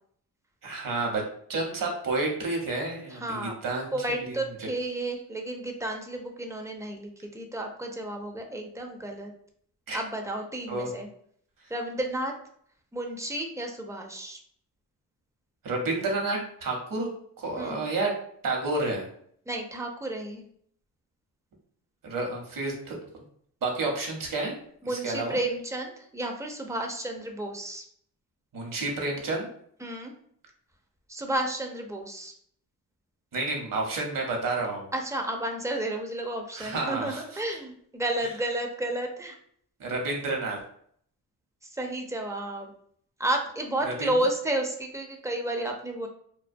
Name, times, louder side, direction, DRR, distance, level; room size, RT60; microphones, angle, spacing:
voice 1, 0.6-1.2 1.5-4.7 9.9-10.0 10.7-10.9 15.6-17.1 17.4-18.1 18.4-19.1 22.0-23.0 23.6-24.5 24.8-25.4 28.5-29.5 33.3-34.9 36.5-37.4 39.8-40.6 43.8-44.1, right 2 dB, 60° right, 1 dB, 0.8 m, -30 dB
voice 2, 3.1-3.6 3.9-9.3 9.9-11.1 11.7-12.3 12.9-14.4 17.6-17.9 19.5-20.4 24.8-27.8 29.8-30.1 31.1-32.3 34.9-39.4 41.7-42.7 43.2-46.1, right 1 dB, 10° right, 3 dB, 0.4 m, -32 dB
2.2 x 2.2 x 2.5 m, 0.64 s
cardioid pair, 80°, 38 cm